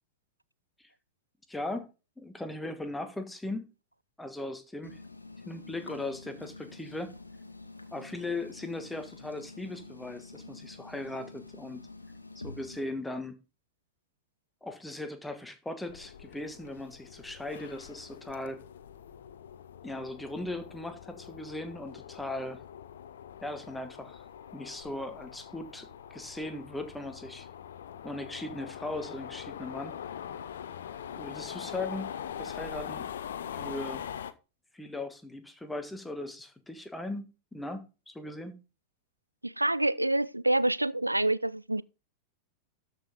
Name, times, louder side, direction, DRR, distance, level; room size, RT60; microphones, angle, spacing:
voice 1, 1.5-3.7 4.2-5.0 5.4-7.1 7.9-11.8 12.3-13.4 14.6-18.6 19.8-22.6 23.4-24.2 24.5-27.5 28.0-29.9 31.1-33.1 33.5-34.0 34.7-38.6, left 2 dB, 5° left, 1.4 m, -38 dB
sound 1, 4.8-12.8, left 3 dB, 80° left, 1.2 m, -47 dB
sound 2, 15.9-34.3, left 9 dB, 60° left, 0.8 m, -43 dB
voice 2, 39.4-41.8, right 1 dB, 85° right, 0.4 m, -27 dB
13.0 x 5.7 x 3.7 m
figure-of-eight pair, 90°, 0 cm